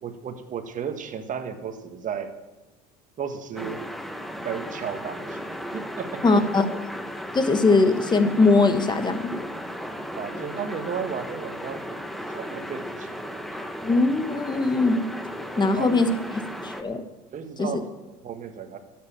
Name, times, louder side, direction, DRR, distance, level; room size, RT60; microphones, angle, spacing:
voice 1, 0.0-2.3 3.2-3.8 4.4-6.2 10.1-12.0 12.3-13.4 15.5-16.0 17.3-17.9 18.2-18.8, right 7 dB, 40° right, 8 dB, 1.6 m, -34 dB
sound 1, 3.6-16.8, equal, ahead, 1.1 m, -35 dB
voice 2, 6.2-6.7 7.3-9.5 13.8-15.1 15.6-16.1 16.6-17.0 17.6-17.7, left 3 dB, 20° left, 9 dB, 1.3 m, -20 dB
12.5 x 7.7 x 7.4 m, 1.1 s
supercardioid pair, 90°, 20 cm